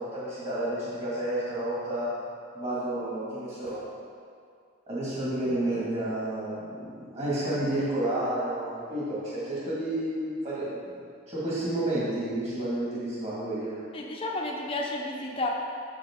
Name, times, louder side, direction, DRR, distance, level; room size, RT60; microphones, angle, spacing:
voice 1, 0.0-2.1 2.5-3.8 4.9-11.0 11.3-13.8, right 1 dB, 30° right, -9 dB, 2.0 m, -30 dB
voice 2, 13.9-15.5, left 2 dB, 25° left, -1 dB, 0.7 m, -31 dB
7.8 x 7.3 x 3.7 m, 2.3 s
head